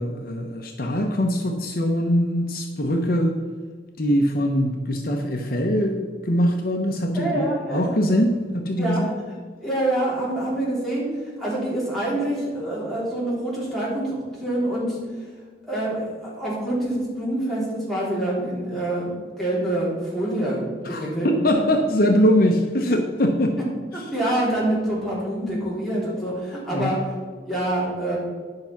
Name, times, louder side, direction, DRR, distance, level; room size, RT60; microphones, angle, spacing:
voice 1, 0.0-3.3 4.0-9.1 20.8-23.5 26.7-26.9, equal, 50° left, 3 dB, 0.8 m, -22 dB
voice 2, 7.1-8.0 8.8-9.0 9.6-15.0 15.7-19.1 19.4-21.3 23.9-27.0 27.5-28.2, right 1 dB, ahead, -7 dB, 3.4 m, -26 dB
10.5 x 5.9 x 5.8 m, 1.5 s
head